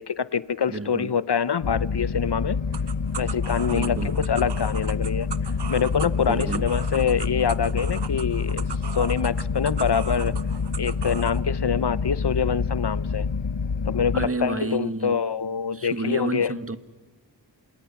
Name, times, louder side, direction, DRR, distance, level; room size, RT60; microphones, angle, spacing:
voice 1, 0.0-2.6 3.2-5.3 5.7-8.6 8.9-10.3 10.8-13.3 13.9-16.5, left 7 dB, 65° left, 0.7 m, -25 dB
voice 2, 0.7-1.1 3.7-4.1 6.2-6.7 14.1-15.2 15.7-16.8, right 2 dB, 30° right, 1.5 m, -30 dB
sound 1, 1.6-14.3, left 5 dB, 90° left, 1.1 m, -27 dB
sound 2, 2.7-11.4, right 7 dB, 65° right, 0.8 m, -38 dB
29.0 x 27.5 x 5.8 m
wide cardioid pair, 60°, 44 cm